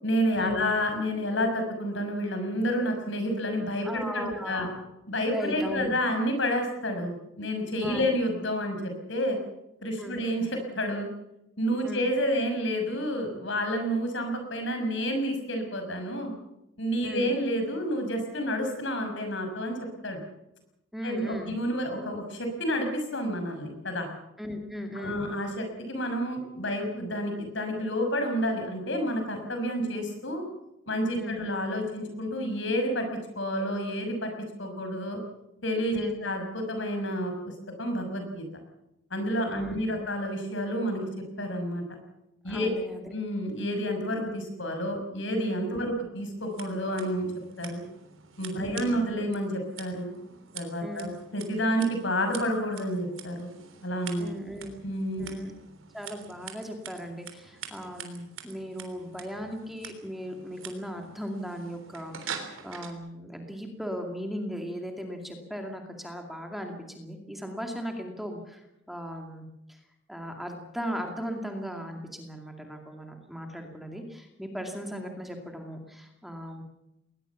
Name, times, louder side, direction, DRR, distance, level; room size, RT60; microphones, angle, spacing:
voice 1, 0.0-4.7 5.1-9.4 9.8-10.5 10.7-11.1 11.6-16.3 16.8-19.8 20.0-20.2 21.0-24.1 24.9-30.4 30.9-33.1 33.4-34.3 34.6-35.2 35.6-37.3 37.8-38.5 39.1-41.0 41.4-41.8 42.4-42.7 43.1-47.3 47.6-47.8 48.4-50.1 50.5-53.5 53.8-54.3 54.8-55.3, equal, 65° left, 5 dB, 6.0 m, -29 dB
voice 2, 3.8-4.8 5.3-5.9 7.8-8.1 10.0-10.2 11.8-12.1 17.0-17.3 20.9-21.5 24.4-25.2 31.1-31.4 35.9-36.2 39.4-40.0 42.4-43.1 45.7-45.9 48.6-49.0 50.8-51.1 54.2-54.7 55.2-55.5 55.9-69.8 70.1-76.6, equal, ahead, 3 dB, 2.3 m, -37 dB
Scissors, 46.4-62.9, right 7 dB, 85° right, 3.5 m, -46 dB
20.5 x 20.0 x 7.2 m, 0.88 s
head